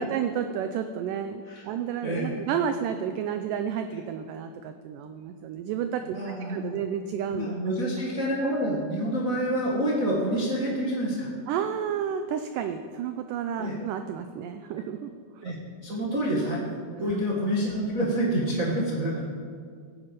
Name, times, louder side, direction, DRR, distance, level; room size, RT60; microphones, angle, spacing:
voice 1, 0.0-6.2 6.5-7.6 11.5-15.1 15.4-15.5 17.1-17.2, right 8 dB, 85° right, 8 dB, 1.9 m, -31 dB
voice 2, 6.0-6.7 7.3-11.3 13.6-13.8 15.4-15.6 15.8-16.6 17.0-19.2, right 1 dB, 55° right, -4 dB, 0.9 m, -27 dB
15.5 x 9.7 x 5.3 m, 2.1 s
omnidirectional pair, 4.4 m